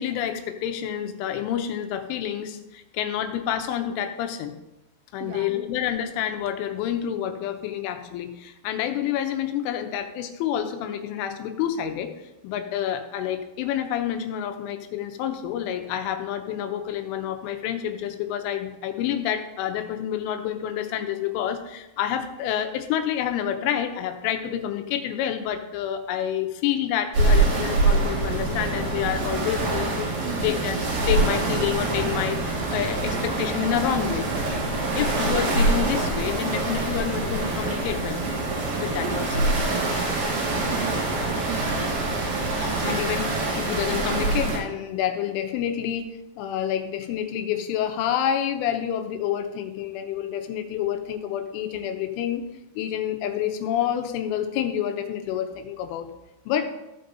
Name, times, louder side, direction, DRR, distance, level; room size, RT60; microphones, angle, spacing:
voice 1, 0.0-4.5 5.1-12.1 12.4-34.3 34.9-38.2 38.8-39.5 42.6-52.4 52.8-56.1 56.5-56.7, left 10 dB, 85° left, 6 dB, 3.4 m, -28 dB
voice 2, 5.2-5.7 30.2-30.6 40.7-41.9, right 10 dB, 85° right, 5 dB, 2.9 m, -38 dB
sound 1, 27.1-44.6, right 2 dB, 60° right, 3.5 m, -25 dB
15.0 x 5.3 x 3.9 m, 0.96 s
omnidirectional pair, 5.5 m